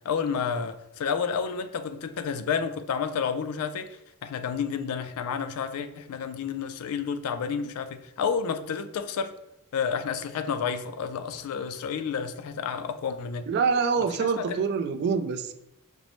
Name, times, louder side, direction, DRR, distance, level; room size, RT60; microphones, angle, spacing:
voice 1, 0.0-9.3 9.7-13.5 14.2-14.7, left 6 dB, 75° left, 0.3 m, -30 dB
voice 2, 13.5-15.5, right 5 dB, 50° right, 0.3 m, -25 dB
5.2 x 2.0 x 3.0 m
head